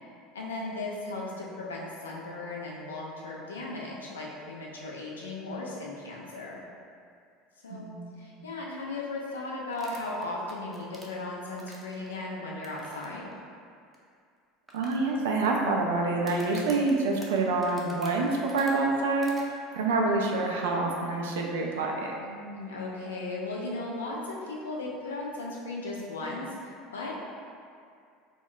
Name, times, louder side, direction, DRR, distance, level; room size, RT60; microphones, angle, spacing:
voice 1, 0.3-6.6 7.6-7.9 8.2-13.3 22.2-27.1, left 2 dB, 80° left, -4 dB, 0.4 m, -36 dB
voice 2, 7.7-8.4 14.7-22.1, right 3 dB, 70° right, 0 dB, 0.3 m, -27 dB
sound 1, 9.7-12.1 12.6-13.0 13.3-13.4 13.9-14.0 14.7-15.5 16.2-18.7 19.2-19.4, equal, 10° right, 0.5 m, -49 dB
2.2 x 2.1 x 3.6 m, 2.3 s
figure-of-eight pair, 70°, 0 cm